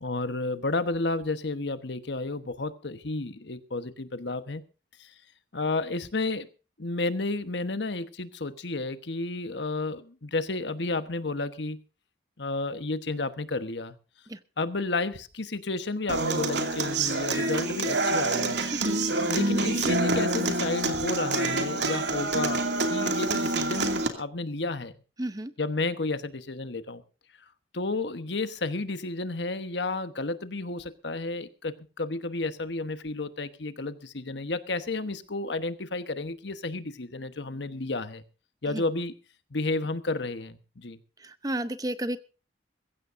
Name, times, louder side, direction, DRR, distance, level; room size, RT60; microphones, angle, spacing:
voice 1, 0.0-4.6 5.0-5.1 5.5-6.5 6.8-11.8 12.4-14.0 14.6-18.6 19.3-25.0 25.6-27.0 27.7-38.2 38.6-39.1 39.5-41.0, left 3 dB, 70° left, 1.2 m, -31 dB
Human voice / Acoustic guitar, 16.1-24.1, right 2 dB, 70° right, 2.5 m, -27 dB
voice 2, 18.7-19.0 25.2-25.5 38.7-38.8 41.2-42.2, right 1 dB, 20° right, 0.8 m, -32 dB
22.5 x 15.5 x 2.7 m
head